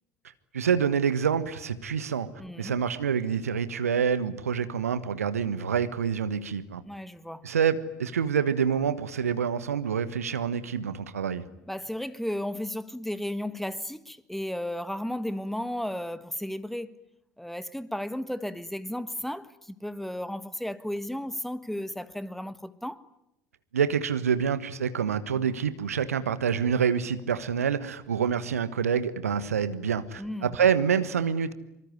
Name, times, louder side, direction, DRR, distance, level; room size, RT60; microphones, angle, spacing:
voice 1, 0.5-2.3 2.6-6.8 7.4-11.4 23.7-31.5, right 7 dB, 75° right, 1.3 m, -27 dB
voice 2, 2.4-2.8 6.8-7.5 11.7-16.9 17.4-23.0 30.2-30.5, left 1 dB, 5° left, 1.5 m, -34 dB
25.5 x 25.0 x 9.5 m
figure-of-eight pair, 60°, 8 cm